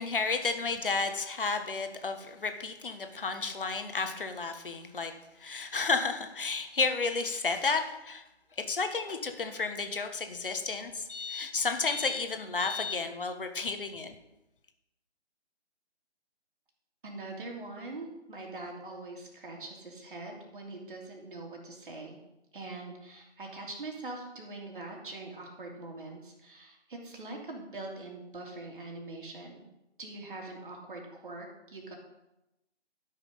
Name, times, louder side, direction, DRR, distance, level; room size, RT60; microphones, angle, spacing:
voice 1, 0.0-5.1 5.4-8.2 8.6-14.1, left 4 dB, 50° left, 7 dB, 1.5 m, -32 dB
voice 2, 17.0-22.2 22.5-29.6 30.0-32.0, right 2 dB, 50° right, 0 dB, 3.1 m, -43 dB
12.5 x 6.5 x 5.2 m, 0.91 s
figure-of-eight pair, 150°, 34 cm